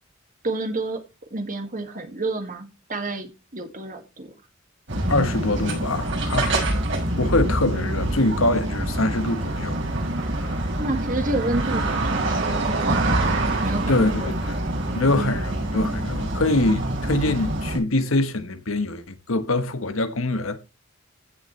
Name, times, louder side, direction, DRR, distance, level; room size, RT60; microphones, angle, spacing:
voice 1, 0.4-1.0 1.3-4.3 10.8-14.4 15.2-15.5, right 2 dB, 40° right, 2.2 m, -30 dB
sound 1, 4.9-17.8, right 1 dB, 60° right, 6.6 m, -25 dB
voice 2, 5.1-6.7 7.2-9.8 10.4-10.7 13.9-14.6 14.9-20.6, left 2 dB, 85° left, 1.3 m, -24 dB
15.5 x 7.1 x 3.3 m
head